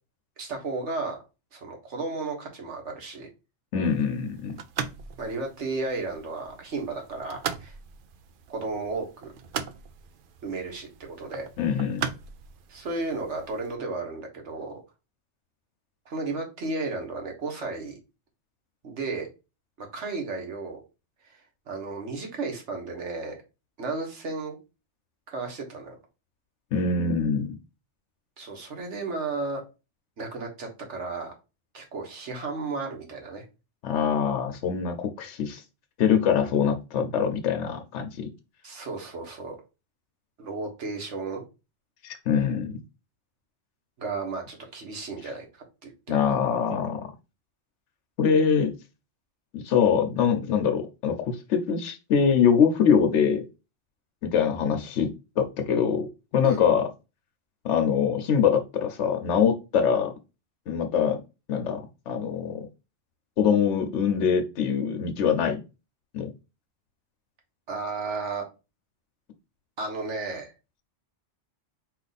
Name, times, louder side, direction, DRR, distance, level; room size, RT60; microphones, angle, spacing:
voice 1, 0.4-1.2 1.5-3.3 5.2-7.7 8.5-9.3 10.4-11.5 12.7-14.8 16.0-18.0 18.8-19.3 19.8-20.8 21.7-23.3 23.8-24.6 25.3-26.0 28.4-29.6 30.2-31.3 31.7-33.4 38.6-39.6 40.4-41.4 44.0-46.2 56.4-56.6 67.7-68.4 69.8-70.5, right 3 dB, 75° right, 1.6 m, -33 dB
voice 2, 3.7-4.5 11.6-12.0 26.7-27.6 33.8-35.6 36.0-38.3 42.0-42.7 46.1-47.0 48.2-48.7 49.5-53.4 54.2-56.1 56.3-56.9 57.6-60.1 60.7-61.2 61.5-62.7 63.4-65.6 66.1-66.3, left 7 dB, 80° left, 1.0 m, -24 dB
sound 1, 3.8-13.8, right 7 dB, 60° right, 0.6 m, -39 dB
4.6 x 2.5 x 4.0 m
omnidirectional pair, 1.2 m